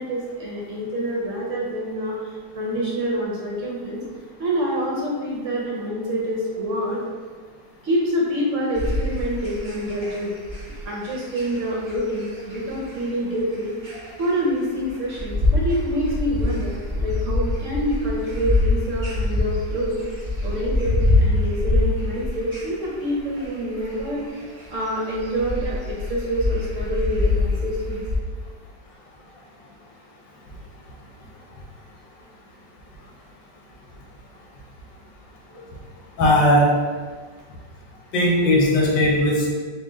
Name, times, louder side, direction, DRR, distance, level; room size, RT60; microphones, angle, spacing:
voice 1, 0.0-4.0 4.4-7.0 7.8-10.3 10.8-13.7 14.2-16.8 17.0-20.0 20.4-24.2 24.7-28.0, equal, 60° right, -4 dB, 0.8 m, -26 dB
sound 1, 8.7-28.2, left 2 dB, 40° right, 0.4 m, -25 dB
voice 2, 36.2-36.7 38.1-39.5, left 1 dB, 85° left, -2 dB, 1.5 m, -17 dB
4.2 x 2.4 x 3.7 m, 1.5 s
omnidirectional pair, 2.0 m